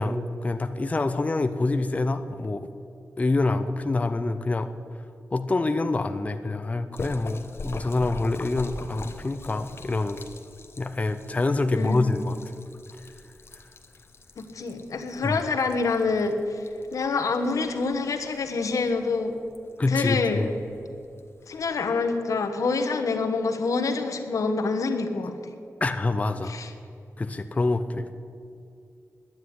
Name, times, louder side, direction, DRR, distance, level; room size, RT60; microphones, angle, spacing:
voice 1, 0.0-2.7 3.2-4.7 5.3-10.3 10.8-12.4 13.5-13.6 15.2-15.4 19.8-20.5 25.8-26.6 27.2-28.1, left 2 dB, 25° left, 8 dB, 0.5 m, -26 dB
Splash splatter, 6.9-21.9, left 2 dB, 50° left, 1.0 m, -44 dB
voice 2, 11.7-12.1 14.4-19.4 19.9-20.4 21.5-25.5 26.4-26.7, left 4 dB, 85° left, 6 dB, 1.2 m, -26 dB
10.5 x 9.7 x 9.3 m, 2.5 s
wide cardioid pair, 135°, 5 cm